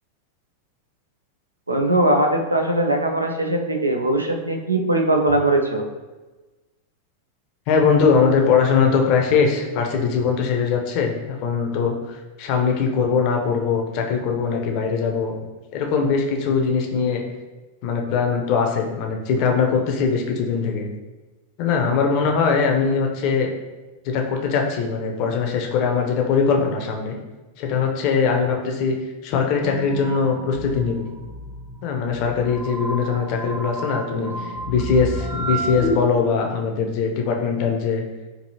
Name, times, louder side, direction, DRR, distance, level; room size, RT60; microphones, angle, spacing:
voice 1, 1.7-5.8 33.0-33.6 34.1-34.3, right 1 dB, 80° right, 3 dB, 0.4 m, -21 dB
voice 2, 7.7-11.9 12.4-15.3 15.7-17.2 17.8-20.9 21.6-23.5 24.0-27.2 27.6-29.0 29.2-31.1 31.8-38.0, left 5 dB, 45° left, 2 dB, 0.6 m, -21 dB
sound 1, 29.6-36.0, right 1 dB, ahead, 0.5 m, -31 dB
4.5 x 2.7 x 2.8 m, 1.2 s
figure-of-eight pair, 90°, 0 cm